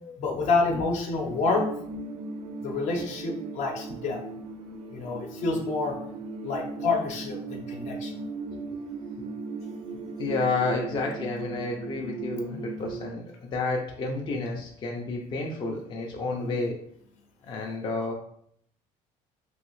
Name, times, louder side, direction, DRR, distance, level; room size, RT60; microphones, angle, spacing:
voice 1, 0.0-1.7 2.6-4.2 4.9-6.0 6.4-8.1 16.4-16.6, left 3 dB, 60° left, 2 dB, 0.7 m, -28 dB
sound 1, 1.3-13.2, right 3 dB, 45° right, 0.4 m, -38 dB
voice 2, 10.2-16.8 17.4-18.1, left 3 dB, 35° left, 0 dB, 0.4 m, -30 dB
3.1 x 2.7 x 3.0 m, 0.67 s
cardioid pair, 135°, 14 cm